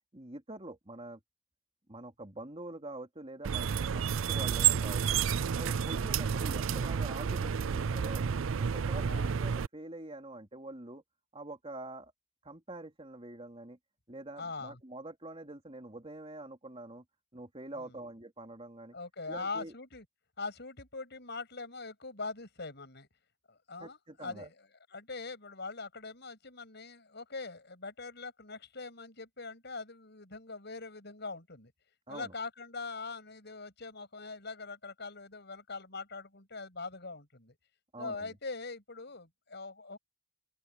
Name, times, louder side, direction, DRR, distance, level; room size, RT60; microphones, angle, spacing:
voice 1, 0.1-1.2 1.9-5.2 5.5-8.2 8.6-11.0 11.3-12.1 12.4-13.8 14.1-17.0 17.3-19.0 19.3-19.7 23.8-24.5 32.1-32.3 37.9-38.3, right 2 dB, 30° right, 3.2 m, -45 dB
sound 1, 3.4-9.7, right 7 dB, 85° right, 0.5 m, -30 dB
voice 2, 14.4-14.8 17.7-18.0 18.9-20.1 20.4-23.1 23.5-24.5 24.9-31.7 32.1-37.6 38.0-40.0, left 3 dB, 60° left, 7.1 m, -42 dB
open air
head